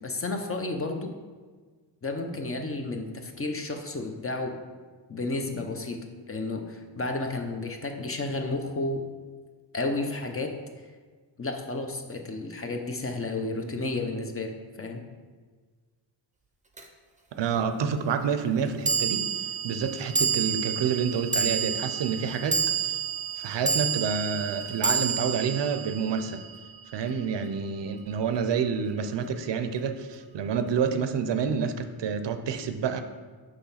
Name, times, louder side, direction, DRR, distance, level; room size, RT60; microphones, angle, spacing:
voice 1, 0.0-1.2 2.0-4.6 5.1-6.0 6.3-9.0 9.7-10.6 11.4-15.0, left 2 dB, 30° left, 4 dB, 0.7 m, -32 dB
sound 1, 16.8-16.9 18.8-27.3, right 6 dB, 15° right, 0.6 m, -29 dB
voice 2, 17.3-23.0 23.4-26.4 26.9-33.0, right 6 dB, 75° right, 9 dB, 0.6 m, -28 dB
6.3 x 3.3 x 5.6 m, 1.4 s
wide cardioid pair, 105°, 43 cm